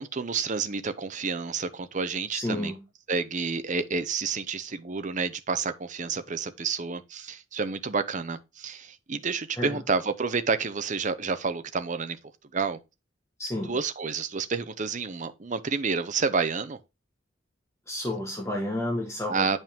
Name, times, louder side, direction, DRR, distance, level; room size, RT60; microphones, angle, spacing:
voice 1, 0.0-2.7 3.1-12.2 12.5-12.8 13.6-16.8 19.3-19.6, right 4 dB, 40° right, 0.7 m, -29 dB
voice 2, 2.3-2.8 9.6-9.8 13.4-13.8 17.9-19.6, left 1 dB, 15° left, 1.3 m, -31 dB
9.1 x 5.4 x 3.5 m
head